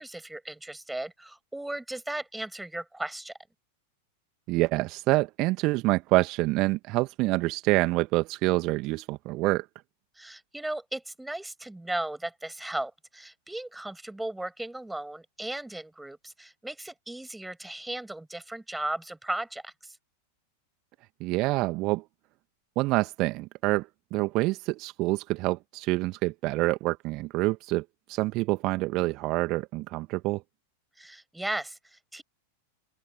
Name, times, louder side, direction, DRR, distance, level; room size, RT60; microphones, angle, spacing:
voice 1, 0.0-3.3 10.1-20.0 31.0-32.2, right 1 dB, 5° right, 6.4 m, -36 dB
voice 2, 4.5-9.7 21.2-22.0 22.7-30.4, right 21 dB, 40° right, 1.5 m, -27 dB
open air
figure-of-eight pair, 90°, 0 cm